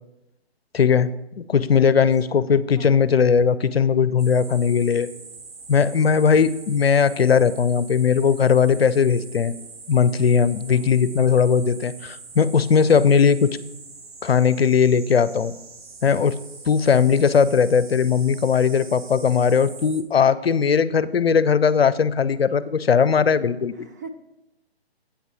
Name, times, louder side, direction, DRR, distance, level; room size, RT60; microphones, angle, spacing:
voice 1, 0.7-1.1 1.4-5.1 5.7-9.5 9.9-13.6 14.2-15.5 16.0-16.4 16.7-23.7, left 6 dB, 65° left, 16 dB, 0.6 m, -18 dB
voice 2, 2.3-3.1 10.7-11.1 12.8-13.2 23.7-24.1, right 3 dB, 15° right, 4 dB, 0.4 m, -44 dB
sound 1, 4.2-20.0, right 4 dB, 65° right, 1.5 m, -43 dB
8.4 x 8.1 x 4.6 m, 0.92 s
figure-of-eight pair, 135°, 32 cm